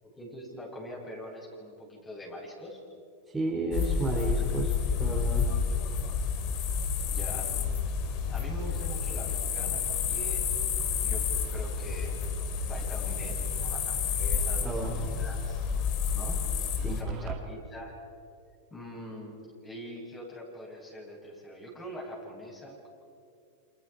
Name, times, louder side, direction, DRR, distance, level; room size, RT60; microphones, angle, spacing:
voice 1, 0.0-2.8 7.1-7.5 8.2-10.5 11.0-12.2 12.7-15.6 16.1-17.9 18.7-22.9, equal, 15° left, -2 dB, 7.3 m, -43 dB
voice 2, 3.3-5.5 14.6-15.3 16.8-17.1, right 3 dB, 10° right, -3 dB, 3.0 m, -32 dB
sound 1, 3.7-17.0, left 6 dB, 45° left, 2.9 m, -30 dB
sound 2, 17.1-17.5, right 10 dB, 35° right, 1.9 m, -36 dB
29.0 x 28.0 x 5.0 m, 2.5 s
supercardioid pair, 140°, 0 cm